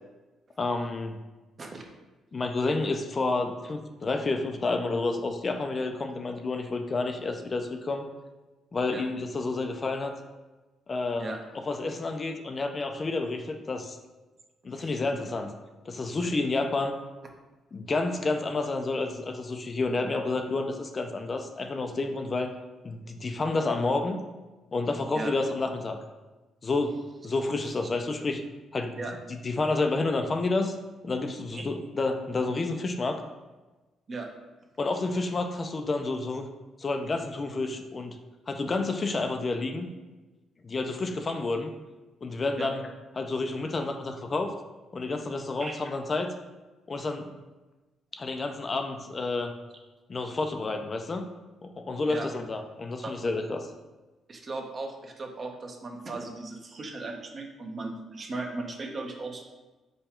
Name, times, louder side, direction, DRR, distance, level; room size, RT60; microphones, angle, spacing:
voice 1, 0.6-1.2 2.3-8.0 8.7-10.2 10.9-11.3 11.7-14.0 14.6-15.5 15.9-16.9 17.7-22.5 22.8-24.2 24.7-26.0 26.6-28.4 28.7-29.0 29.4-30.8 31.0-33.2 34.8-36.5 36.8-38.2 38.5-39.9 40.6-41.7 42.2-42.8 43.2-44.5 44.9-46.3 46.9-47.3 48.1-49.6 50.1-51.2 51.6-53.7, left 3 dB, 35° left, 5 dB, 0.4 m, -30 dB
voice 2, 54.3-59.4, right 3 dB, 40° right, 2 dB, 0.8 m, -37 dB
5.4 x 2.3 x 4.3 m, 1.2 s
cardioid pair, 90°, 0 cm